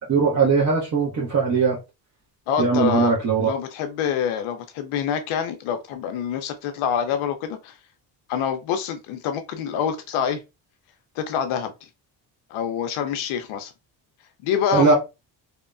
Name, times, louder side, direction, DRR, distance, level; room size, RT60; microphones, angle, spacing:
voice 1, 0.1-1.8 2.6-3.5 14.7-15.0, right 5 dB, 35° right, 1.0 m, -20 dB
voice 2, 2.5-3.1 3.4-7.7 8.3-10.4 11.2-11.7 12.5-13.7 14.4-14.9, left 8 dB, 80° left, 0.6 m, -26 dB
2.7 x 2.1 x 2.4 m
supercardioid pair, 75°, 48 cm